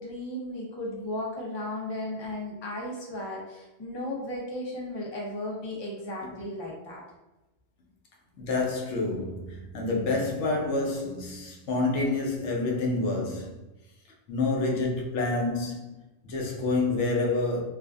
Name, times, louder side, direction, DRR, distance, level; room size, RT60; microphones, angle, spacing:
voice 1, 0.0-7.0, left 1 dB, 30° left, 0.5 m, -35 dB
voice 2, 8.4-13.6 14.3-16.0 16.2-17.6, left 3 dB, 85° left, 0.9 m, -28 dB
2.5 x 2.3 x 2.3 m
omnidirectional pair, 1.2 m